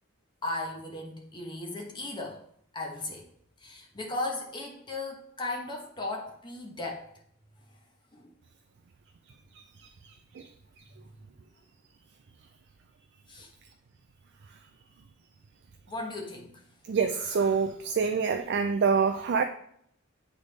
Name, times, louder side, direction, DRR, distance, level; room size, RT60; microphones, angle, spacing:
voice 1, 0.4-2.4 2.7-3.3 3.6-7.1 8.1-8.3 11.0-11.1 13.3-13.5 15.9-16.6, left 2 dB, 20° left, 0 dB, 1.1 m, -36 dB
voice 2, 16.9-19.4, right 5 dB, 55° right, 7 dB, 0.4 m, -26 dB
8.0 x 3.5 x 4.1 m, 0.67 s
head